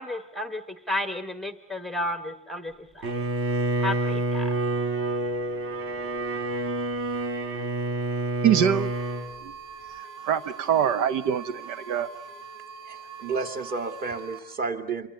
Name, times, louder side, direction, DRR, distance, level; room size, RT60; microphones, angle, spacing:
voice 1, 0.0-3.2 3.8-4.5, left 1 dB, ahead, 9 dB, 1.1 m, -32 dB
Bowed string instrument, 3.0-9.3, right 2 dB, 45° right, 3.5 m, -28 dB
voice 2, 8.4-8.9 9.4-9.5 9.9-12.1, right 9 dB, 65° right, 13 dB, 1.2 m, -24 dB
sound 1, 8.6-14.4, right 5 dB, 85° right, 3.0 m, -43 dB
voice 3, 12.9-15.1, right 4 dB, 30° right, 6 dB, 2.7 m, -31 dB
28.0 x 24.5 x 8.6 m, 0.71 s
cardioid pair, 170°, 31 cm